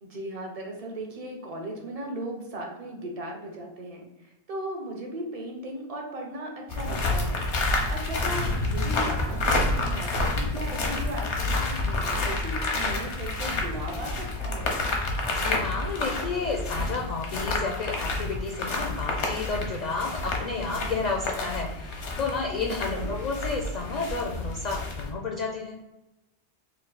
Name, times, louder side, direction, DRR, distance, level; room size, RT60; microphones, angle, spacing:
voice 1, 0.0-7.4 7.9-14.8 22.6-23.1, right 1 dB, 40° right, 0 dB, 0.7 m, -37 dB
sound 1, 6.7-25.1, left 2 dB, 85° left, 1.1 m, -29 dB
voice 2, 15.2-25.8, left 4 dB, 55° left, 1 dB, 0.5 m, -31 dB
3.3 x 2.4 x 3.9 m, 0.97 s
omnidirectional pair, 1.1 m